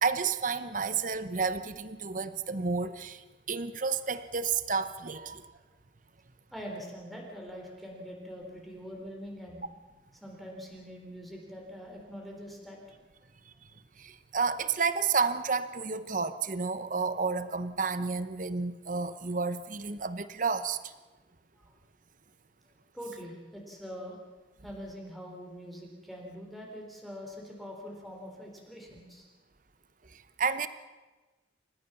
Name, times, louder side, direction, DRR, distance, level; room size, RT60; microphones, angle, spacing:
voice 1, 0.0-3.2 3.5-5.4 14.0-20.8 30.4-30.7, right 5 dB, 45° right, 12 dB, 1.0 m, -31 dB
voice 2, 6.5-9.7 10.1-12.8 21.6-21.7 22.9-24.2 24.6-29.3, equal, ahead, -1 dB, 4.0 m, -44 dB
29.0 x 15.5 x 7.0 m, 1.2 s
head